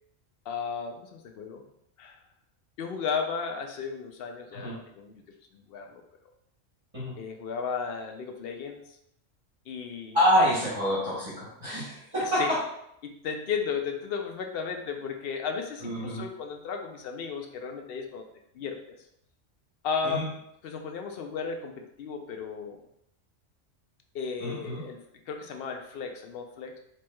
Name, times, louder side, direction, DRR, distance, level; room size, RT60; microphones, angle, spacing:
voice 1, 0.5-1.6 2.0-2.2 2.8-5.1 5.7-6.0 7.2-8.8 9.7-10.2 12.2-12.6 13.0-18.2 18.5-19.0 19.8-22.8 24.1-25.0 25.3-26.8, left 6 dB, 65° left, 4 dB, 0.7 m, -34 dB
voice 2, 10.1-12.4 15.8-16.3 20.0-20.3 24.4-24.8, equal, 30° right, -9 dB, 1.3 m, -27 dB
4.4 x 3.1 x 2.2 m, 0.75 s
omnidirectional pair, 1.3 m